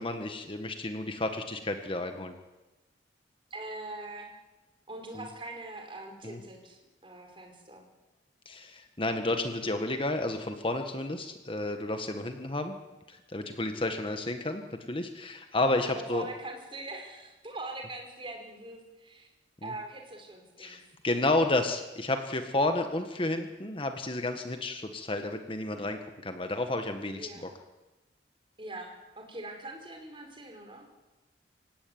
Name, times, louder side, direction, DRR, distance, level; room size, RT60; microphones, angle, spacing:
voice 1, 0.0-2.3 5.1-5.2 6.2-6.4 8.4-12.7 13.1-16.3 19.6-19.7 20.6-27.5, left 2 dB, 30° left, 6 dB, 1.6 m, -31 dB
voice 2, 3.5-4.3 4.9-7.9 15.8-19.3 19.6-20.8 27.2-27.4 28.6-30.9, right 2 dB, 30° right, 3 dB, 5.1 m, -42 dB
25.5 x 17.0 x 9.6 m, 1.1 s
head